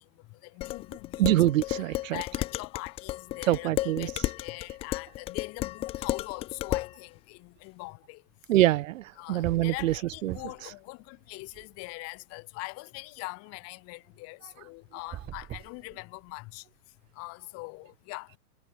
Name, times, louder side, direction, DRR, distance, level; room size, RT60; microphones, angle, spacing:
voice 1, 0.3-1.3 1.6-8.2 9.2-16.6 17.1-18.4, left 27 dB, 30° left, 4.8 m, -42 dB
Dishes pots and pans, 0.6-6.9, left 16 dB, 15° left, 0.6 m, -33 dB
voice 2, 1.2-2.2 3.4-4.1 8.5-10.4, right 15 dB, 60° right, 2.7 m, -25 dB
sound 1, 9.0-9.1 9.4-10.8 11.1-12.2 14.9-16.5, right 12 dB, 20° right, 7.2 m, -43 dB
supercardioid pair, 165°, 45 cm